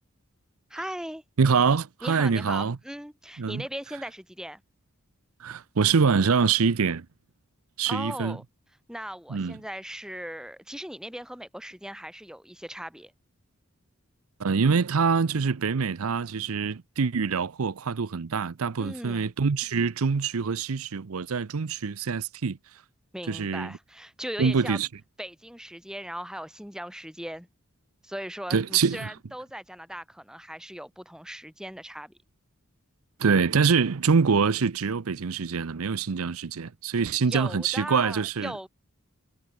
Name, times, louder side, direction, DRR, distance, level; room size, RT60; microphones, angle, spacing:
voice 1, 0.7-1.2 2.0-4.6 7.9-8.4 8.9-13.1 18.8-19.3 23.1-24.8 25.2-27.5 28.0-32.1 37.1-38.7, equal, 5° right, 5.3 m, -38 dB
voice 2, 1.4-2.8 3.4-3.6 5.4-7.1 7.8-8.4 9.3-9.6 14.4-22.6 23.3-23.8 24.4-24.9 28.5-29.1 33.2-38.5, right 5 dB, 80° right, 0.6 m, -25 dB
head